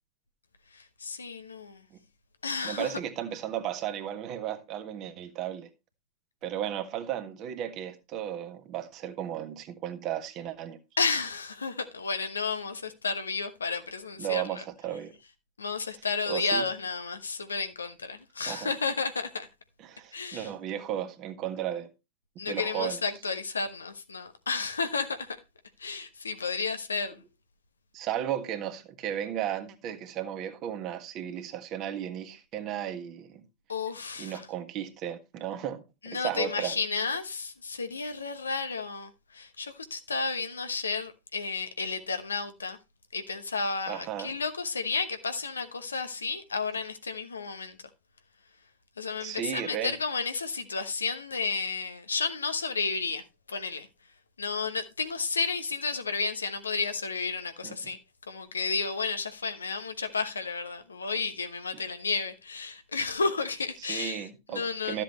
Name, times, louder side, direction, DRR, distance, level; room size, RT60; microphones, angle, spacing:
voice 1, 0.7-1.8 2.4-3.0 11.0-14.6 15.6-19.5 20.1-20.5 22.4-25.4 25.8-27.2 33.7-34.5 36.0-42.8 43.1-47.8 49.0-53.9 54.4-58.0 58.3-65.0, left 4 dB, 75° left, 1.1 m, -32 dB
voice 2, 2.6-5.7 6.4-10.8 14.2-15.1 16.3-16.6 18.4-18.7 19.8-21.9 22.5-23.0 27.9-33.4 34.2-36.7 43.9-44.3 49.2-49.9 57.6-57.7 63.9-65.0, right 10 dB, 35° right, 1.6 m, -34 dB
13.0 x 7.5 x 3.0 m
figure-of-eight pair, 90°, 0 cm